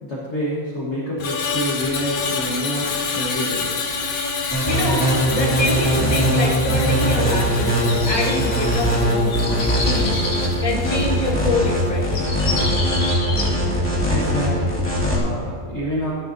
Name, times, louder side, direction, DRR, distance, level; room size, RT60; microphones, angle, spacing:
voice 1, 0.0-3.7 14.1-16.1, equal, 40° left, -6 dB, 1.4 m, -27 dB
Screech, 1.2-11.6 11.9-12.2, left 5 dB, 85° left, 1.9 m, -28 dB
voice 2, 4.3-5.0 5.3-10.2 10.6-12.3, left 2 dB, 25° left, -3 dB, 1.6 m, -25 dB
sound 1, 4.5-15.2, equal, 5° left, 1.9 m, -21 dB
sound 2, 7.4-8.9 9.3-10.6 11.8-11.9 12.1-13.5, left 2 dB, 60° left, 2.0 m, -29 dB
13.0 x 11.0 x 2.6 m, 2.3 s
omnidirectional pair, 2.1 m